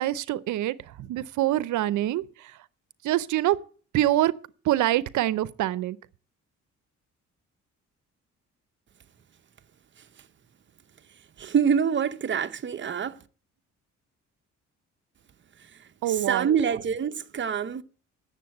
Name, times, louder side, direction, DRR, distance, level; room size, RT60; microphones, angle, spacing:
voice 1, 0.0-2.2 3.0-3.6 3.9-4.3 4.7-6.0 16.0-16.5, right 14 dB, 75° right, 0.6 m, -25 dB
voice 2, 11.4-13.2 16.1-17.8, right 7 dB, 40° right, 0.8 m, -26 dB
9.3 x 7.2 x 7.8 m
cardioid pair, 90°, 30 cm